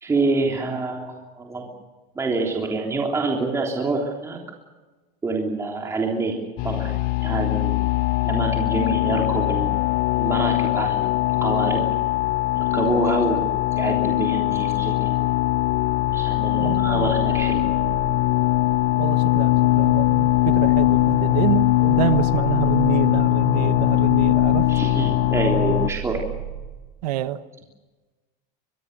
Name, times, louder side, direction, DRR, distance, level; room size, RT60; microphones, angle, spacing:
voice 1, 0.0-1.7 2.2-4.4 5.2-6.9 7.2-7.8 8.2-9.7 10.2-11.1 11.4-11.8 12.6-15.2 16.1-17.7 24.7-26.2, right 3 dB, 15° right, 3.4 m, -26 dB
sound 1, 6.6-25.9, left 18 dB, 50° left, 0.7 m, -21 dB
sound 2, 12.0-26.8, right 10 dB, 65° right, 7.4 m, -37 dB
voice 2, 16.6-17.1 19.0-24.7 27.0-27.4, right 13 dB, 90° right, 1.3 m, -27 dB
23.5 x 23.0 x 6.7 m
supercardioid pair, 145°, 20 cm